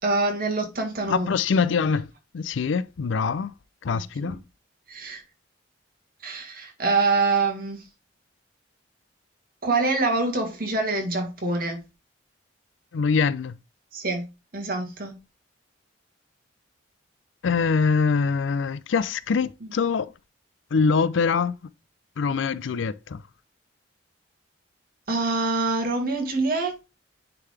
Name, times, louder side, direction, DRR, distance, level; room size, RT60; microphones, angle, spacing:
voice 1, 0.0-1.3 4.2-4.4 4.9-5.2 6.2-7.8 9.6-11.8 13.9-14.3 14.5-15.2 19.6-19.7 25.1-26.9, right 3 dB, 50° right, 2.0 m, -25 dB
voice 2, 1.1-2.1 2.3-3.5 3.8-4.4 12.9-13.6 17.4-20.1 20.7-21.6 22.2-23.2, left 5 dB, 75° left, 0.4 m, -24 dB
9.7 x 3.8 x 3.3 m
head